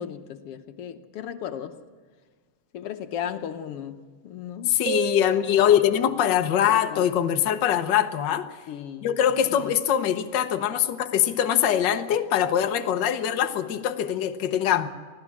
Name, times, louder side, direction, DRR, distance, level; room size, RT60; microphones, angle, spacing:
voice 1, 0.0-1.7 2.7-4.0 4.2-4.7 6.7-7.0 8.7-9.1 9.6-9.7, left 9 dB, 65° left, 8 dB, 1.5 m, -35 dB
voice 2, 4.7-8.5 9.0-14.9, left 10 dB, 85° left, 7 dB, 0.9 m, -23 dB
sound 1, 4.9-6.4, right 9 dB, 70° right, 1.4 m, -34 dB
24.5 x 16.0 x 7.3 m, 1.5 s
omnidirectional pair, 3.6 m